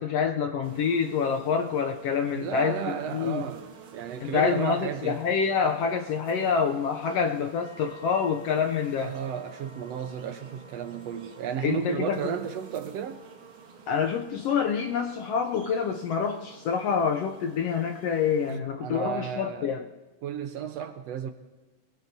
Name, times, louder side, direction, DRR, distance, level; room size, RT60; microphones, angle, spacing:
voice 1, 0.0-2.8 3.1-3.4 4.2-9.1 11.6-12.3 13.9-19.8, left 6 dB, 75° left, 5 dB, 1.5 m, -27 dB
sound 1, 0.6-18.5, right 7 dB, 55° right, 1.8 m, -50 dB
voice 2, 2.3-3.7 3.9-5.2 9.0-13.2 18.5-19.7 20.2-21.3, right 8 dB, 70° right, 7 dB, 1.7 m, -33 dB
sound 2, 7.6-13.8, left 2 dB, 15° left, 5.1 m, -54 dB
27.5 x 19.5 x 2.7 m, 1.2 s
omnidirectional pair, 3.4 m